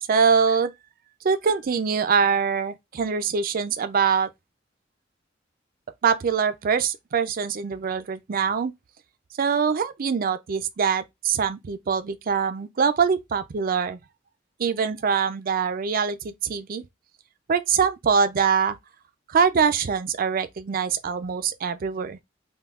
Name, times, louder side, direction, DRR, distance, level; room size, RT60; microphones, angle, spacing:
voice 1, 0.1-0.7 1.2-4.3 6.0-8.7 9.4-14.0 14.6-16.8 17.5-18.8 19.3-22.2, right 6 dB, 50° right, 0.4 m, -23 dB
5.4 x 2.3 x 2.3 m
head